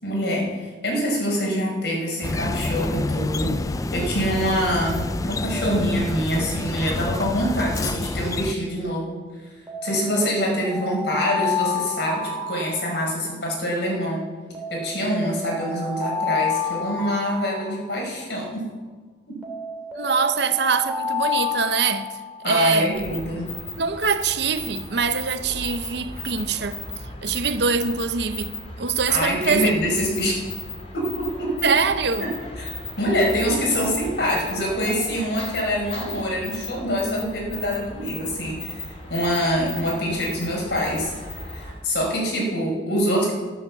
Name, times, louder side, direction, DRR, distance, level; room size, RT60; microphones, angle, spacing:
voice 1, 0.0-3.6 3.9-9.2 9.8-14.2 14.7-18.7 19.3-19.4 22.4-23.5 29.1-30.4 30.9-31.7 32.2-32.3 32.6-32.7 33.0-43.3, equal, 65° left, 5.1 m, -25 dB
sound 1, 2.2-8.5, left 2 dB, 20° left, 0.3 m, -28 dB
Alarm, 7.6-8.0 9.7-13.4 14.5-18.3 19.4-22.6, left 4 dB, 10° right, 2.5 m, -30 dB
voice 2, 19.9-22.2 22.4-23.2 23.8-26.8 27.2-29.8 31.6-32.3, right 5 dB, 65° right, 0.8 m, -23 dB
sound 2, 22.9-41.8, left 3 dB, 35° left, 2.8 m, -36 dB
12.5 x 11.5 x 7.2 m
head